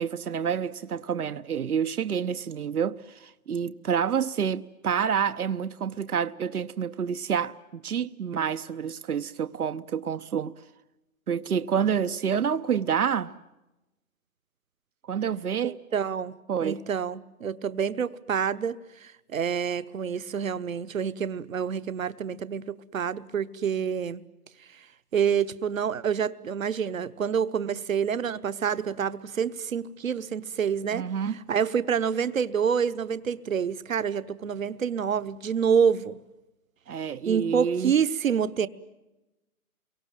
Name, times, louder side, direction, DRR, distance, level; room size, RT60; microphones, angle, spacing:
voice 1, 0.0-10.5 11.3-13.4 15.1-15.8 16.5-16.8 30.9-31.4 36.9-37.9, right 7 dB, 85° right, 1.0 m, -28 dB
voice 2, 15.6-16.3 16.6-24.2 25.1-31.1 31.5-36.2 37.3-38.7, right 7 dB, 65° right, 1.1 m, -27 dB
28.5 x 24.0 x 7.4 m
hypercardioid pair, 175°, 44 cm